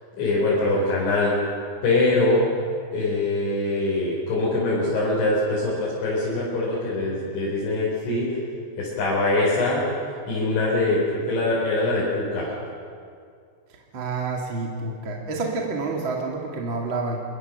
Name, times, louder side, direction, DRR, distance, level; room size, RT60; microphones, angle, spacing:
voice 1, 0.2-1.4 1.8-2.4 2.9-8.4 8.8-9.8 10.3-12.5, left 2 dB, 75° left, -7 dB, 7.2 m, -23 dB
voice 2, 13.9-17.2, right 3 dB, 40° right, 0 dB, 1.9 m, -28 dB
26.0 x 22.0 x 6.8 m, 2.3 s
omnidirectional pair, 5.5 m